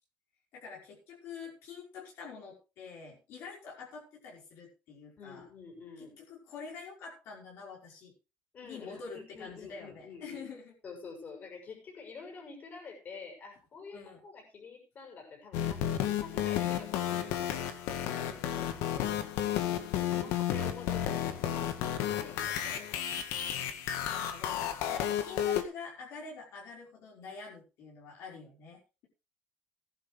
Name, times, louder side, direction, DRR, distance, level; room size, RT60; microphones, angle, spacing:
voice 1, 0.5-5.5 6.0-8.1 8.6-10.8 13.9-14.2 18.1-19.3 24.1-29.1, left 5 dB, 70° left, -2 dB, 5.3 m, -47 dB
voice 2, 5.2-6.2 8.5-10.4 10.8-17.5 19.8-23.0, left 5 dB, 40° left, 2 dB, 6.3 m, -48 dB
sound 1, 15.5-25.6, left 10 dB, 90° left, 1.7 m, -32 dB
16.0 x 11.0 x 3.5 m, 0.31 s
cardioid pair, 130°, 5 cm